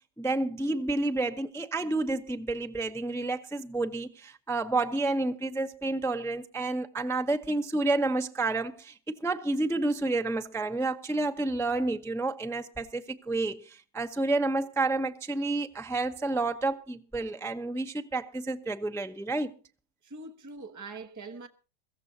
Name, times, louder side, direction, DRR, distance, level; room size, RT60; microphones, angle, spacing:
voice 1, 0.2-19.5, right 2 dB, 5° left, 0.5 m, -30 dB
voice 2, 20.0-21.5, right 3 dB, 15° right, 0.9 m, -43 dB
22.5 x 15.0 x 2.7 m
omnidirectional pair, 1.8 m